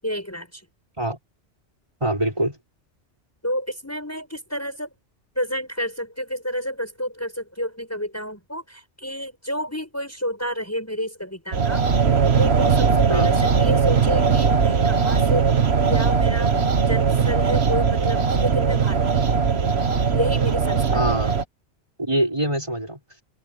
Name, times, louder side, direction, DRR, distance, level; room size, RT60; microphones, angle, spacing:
voice 1, 0.0-0.6 3.4-4.9 5.4-11.9 12.4-16.6 16.9-19.3 20.1-21.0 21.2-21.4, equal, 15° left, 7.5 m, -29 dB
voice 2, 2.0-2.6 13.1-13.3 20.9-21.3 22.0-23.0, right 1 dB, 25° right, 5.4 m, -24 dB
sound 1, 11.5-21.4, right 6 dB, 65° right, 1.6 m, -19 dB
omnidirectional pair, 1.2 m